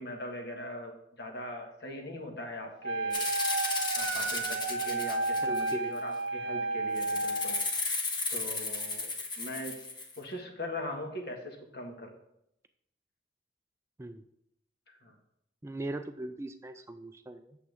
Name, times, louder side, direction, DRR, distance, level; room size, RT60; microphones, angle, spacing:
voice 1, 0.0-3.3 3.9-7.6 8.3-9.8 10.2-12.2 14.9-15.1, left 1 dB, 60° left, 2 dB, 1.6 m, -41 dB
Wind instrument woodwind instrument, 2.8-7.6, right 2 dB, 85° right, 0.8 m, -32 dB
Rattle (instrument), 3.1-6.0 7.0-10.2, left 3 dB, 25° left, 1.0 m, -34 dB
voice 2, 5.4-6.0 14.0-14.3 15.6-17.6, right 2 dB, 15° right, 8 dB, 0.3 m, -39 dB
8.6 x 7.1 x 3.5 m, 0.77 s
head